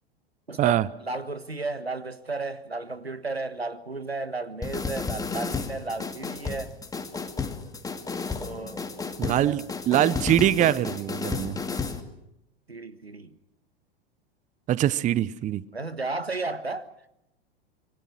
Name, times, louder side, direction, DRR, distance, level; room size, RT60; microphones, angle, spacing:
voice 1, 0.5-6.7 8.4-8.9 9.2-9.6 12.7-13.3 15.7-16.9, right 3 dB, 90° right, 1.6 m, -34 dB
sound 1, 4.6-12.0, left 4 dB, 10° left, 2.4 m, -32 dB
voice 2, 9.2-11.6 14.7-15.6, right 12 dB, 25° right, 0.8 m, -23 dB
26.5 x 24.0 x 6.2 m
figure-of-eight pair, 90°, 30 cm